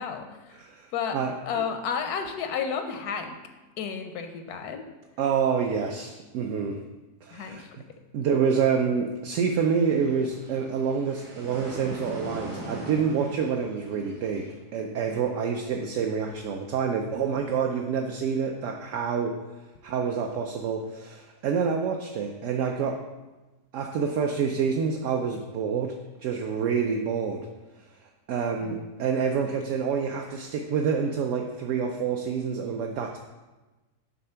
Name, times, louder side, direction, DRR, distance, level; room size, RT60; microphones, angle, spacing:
voice 1, 0.0-0.6 0.9-1.2 1.5-3.4 3.8-4.8 7.3-7.7 28.6-28.8, left 6 dB, 80° left, 6 dB, 1.1 m, -32 dB
voice 2, 0.6-1.6 5.2-6.8 7.2-7.6 8.1-19.4 19.8-23.0 23.7-27.5 28.3-33.2, right 6 dB, 70° right, 2 dB, 0.8 m, -27 dB
sound 1, 9.3-14.6, right 1 dB, 90° right, 2.5 m, -41 dB
6.7 x 3.6 x 5.6 m, 1.1 s
omnidirectional pair, 1.7 m